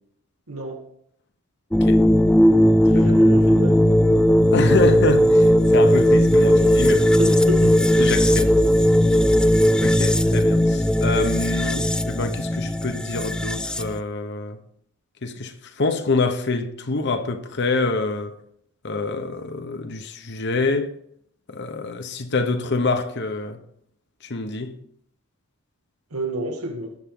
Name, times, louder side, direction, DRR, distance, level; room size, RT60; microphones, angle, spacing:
voice 1, 0.5-0.8 2.8-3.8 7.2-8.1 26.1-26.9, right 1 dB, 90° right, 2.0 m, -30 dB
sound 1, 1.7-14.0, equal, 5° left, 0.3 m, -17 dB
voice 2, 4.5-7.1 8.0-8.5 9.8-14.6 15.2-18.4 18.8-20.9 21.5-23.6 24.3-24.7, left 3 dB, 55° left, 1.0 m, -26 dB
19.5 x 7.2 x 3.8 m
head